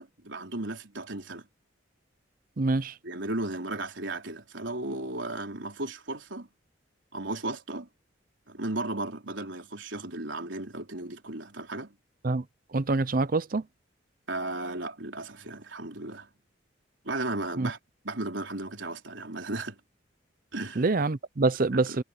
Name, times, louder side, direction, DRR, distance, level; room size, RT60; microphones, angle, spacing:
voice 1, 0.0-1.5 3.0-6.5 7.1-7.9 8.5-12.0 14.3-16.3 17.0-17.8 18.0-19.8 20.5-20.8 21.7-22.0, right 2 dB, 70° right, 3.8 m, -35 dB
voice 2, 2.6-2.9 12.2-12.4 12.7-13.6 17.6-17.7 20.8-22.0, right 3 dB, 45° right, 0.6 m, -25 dB
head